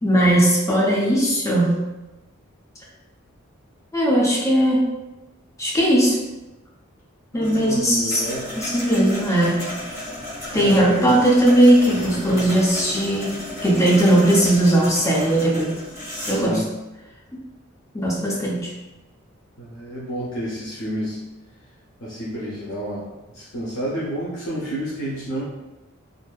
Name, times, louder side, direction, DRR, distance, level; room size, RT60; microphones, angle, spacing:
voice 1, 0.0-1.8 3.9-4.9 5.6-6.2 7.3-8.3 8.5-9.7 10.5-15.8 16.3-16.6 17.3-17.4 17.9-18.7, right 1 dB, 15° left, -5 dB, 0.5 m, -18 dB
voice 2, 7.3-8.5 10.5-11.2 11.9-12.6 16.3-16.7 19.6-21.2 22.0-23.0 23.3-25.4, equal, 65° left, -8 dB, 0.7 m, -30 dB
sound 1, 7.4-16.5, left 1 dB, 15° right, 1.3 m, -34 dB
2.6 x 2.5 x 2.2 m, 1.0 s
head